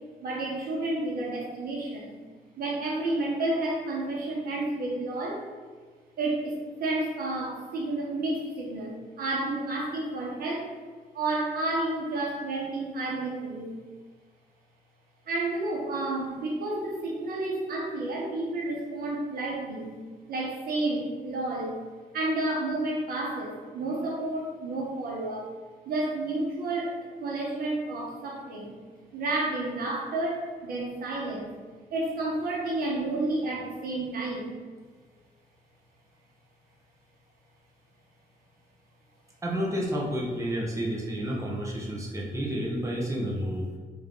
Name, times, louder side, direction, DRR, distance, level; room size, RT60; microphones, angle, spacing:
voice 1, 0.2-2.2 2.6-5.5 6.2-10.7 11.1-13.7 15.3-20.0 20.3-21.8 22.1-25.4 25.8-28.7 29.1-31.5 31.9-34.5, right 2 dB, 70° right, -3 dB, 1.0 m, -31 dB
voice 2, 39.4-43.7, equal, 20° right, -2 dB, 0.8 m, -30 dB
3.5 x 3.5 x 3.7 m, 1.5 s
cardioid pair, 145°, 16 cm